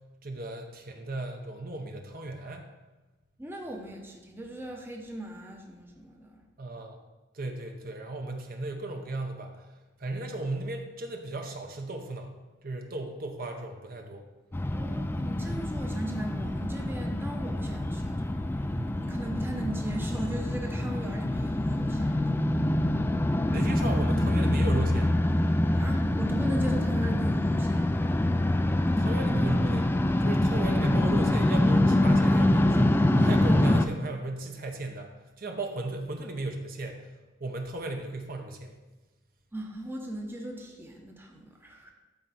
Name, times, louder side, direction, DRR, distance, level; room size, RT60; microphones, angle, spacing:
voice 1, 0.2-2.7 6.6-7.0 7.3-9.7 10.0-12.3 12.6-14.3 18.7-19.0 23.5-25.2 29.0-29.9 30.2-37.1 37.4-38.7, right 2 dB, 50° right, 3 dB, 0.9 m, -35 dB
voice 2, 3.4-6.4 14.7-22.3 25.7-27.9 39.5-41.9, right 1 dB, 10° right, 1 dB, 0.8 m, -38 dB
sound 1, 14.5-33.9, left 1 dB, 10° left, 0.3 m, -25 dB
12.0 x 4.6 x 4.1 m, 1.2 s
head